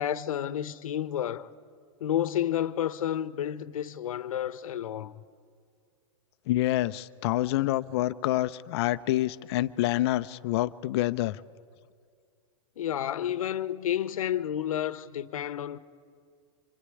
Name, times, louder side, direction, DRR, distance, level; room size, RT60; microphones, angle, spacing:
voice 1, 0.0-1.5 2.0-5.2 12.8-15.8, left 10 dB, 85° left, 1.1 m, -30 dB
voice 2, 6.5-11.4, left 15 dB, 50° left, 0.7 m, -27 dB
26.0 x 22.0 x 9.9 m
supercardioid pair, 150°, 17 cm